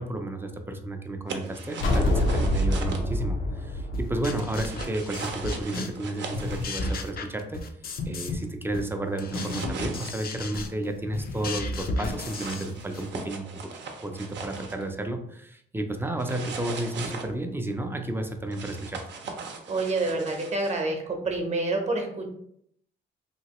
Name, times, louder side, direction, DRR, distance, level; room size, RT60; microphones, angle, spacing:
voice 1, 0.0-7.6 8.0-13.7 14.0-19.0, right 1 dB, 10° right, 5 dB, 0.5 m, -32 dB
sound 1, 1.3-3.0 4.4-7.0 9.3-10.1 12.0-14.9 16.2-17.3 18.5-20.8, right 4 dB, 65° right, 0.6 m, -39 dB
sound 2, 1.8-5.2, left 1 dB, 80° left, 0.8 m, -26 dB
sound 3, 3.9-6.1 6.3-8.5 8.7-13.1, left 2 dB, 50° left, 0.5 m, -34 dB
voice 2, 19.7-22.3, right 2 dB, 35° right, 3 dB, 0.8 m, -28 dB
2.9 x 2.8 x 2.9 m, 0.69 s
cardioid pair, 90°, 20 cm